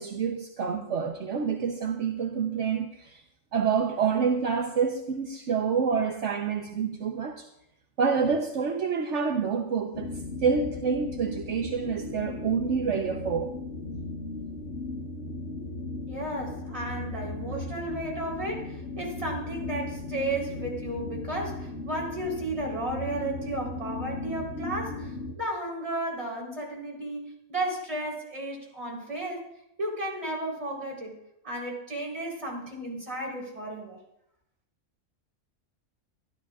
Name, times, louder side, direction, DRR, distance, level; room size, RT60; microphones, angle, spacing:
voice 1, 0.0-3.2 3.5-7.5 8.0-10.1 10.4-13.5, right 6 dB, 70° right, 1.2 m, -27 dB
sound 1, 9.9-25.4, left 2 dB, 70° left, 1.8 m, -37 dB
voice 2, 16.1-29.4 29.8-31.1 31.4-34.0, right 1 dB, 25° right, 4.1 m, -33 dB
25.0 x 12.5 x 2.5 m
omnidirectional pair, 1.3 m